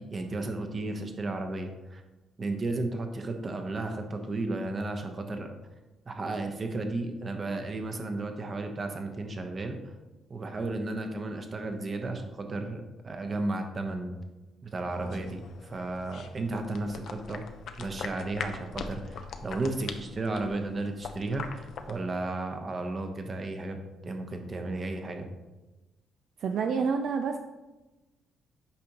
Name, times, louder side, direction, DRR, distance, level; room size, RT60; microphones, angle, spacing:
voice 1, 0.0-2.0 2.4-5.5 6.1-9.8 10.3-14.1 14.6-17.4 17.8-23.8 24.0-25.3, right 2 dB, 40° right, 5 dB, 1.0 m, -33 dB
sound 1, 14.9-22.0, left 6 dB, 70° left, 0.6 m, -42 dB
voice 2, 26.4-27.4, right 5 dB, 65° right, 5 dB, 0.4 m, -28 dB
8.5 x 5.1 x 3.0 m, 1.1 s
cardioid pair, 90°, 0 cm